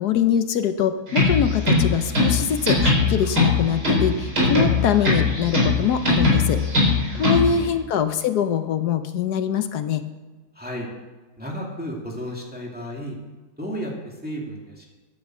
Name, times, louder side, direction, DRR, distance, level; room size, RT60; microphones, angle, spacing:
voice 1, 0.0-10.0, left 8 dB, 85° left, 10 dB, 1.4 m, -23 dB
sound 1, 1.1-7.6, left 3 dB, 85° right, 4.7 m, -21 dB
voice 2, 7.1-7.7 10.5-10.9 11.4-13.2 13.6-14.9, equal, 5° right, -2 dB, 2.5 m, -33 dB
12.0 x 9.5 x 7.7 m, 1.3 s
omnidirectional pair, 1.7 m